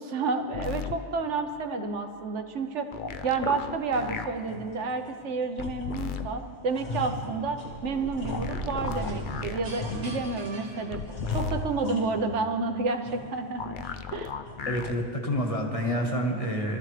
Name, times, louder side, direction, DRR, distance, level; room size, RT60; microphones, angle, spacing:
voice 1, 0.0-2.9 3.2-11.0 11.3-13.8 14.1-14.3, right 4 dB, 75° right, 6 dB, 1.2 m, -30 dB
sound 1, 0.5-0.9 2.9-4.3 5.6-6.3 8.3-9.6 10.9-11.6 13.6-14.9 16.3-16.4, left 7 dB, 55° left, 0.6 m, -35 dB
sound 2, 3.1-3.3 3.7-3.9 4.3-5.2 5.6-6.2 6.5-9.1 9.6-10.6 11.1-12.5 12.9-13.5 13.8-13.9 14.4-14.8, left 2 dB, 75° left, 2.6 m, -38 dB
sound 3, 7.6-11.6, right 1 dB, 55° right, 1.8 m, -38 dB
voice 2, 14.6-16.8, equal, 30° left, 1 dB, 1.5 m, -28 dB
22.5 x 13.5 x 3.3 m, 2.5 s
omnidirectional pair, 1.2 m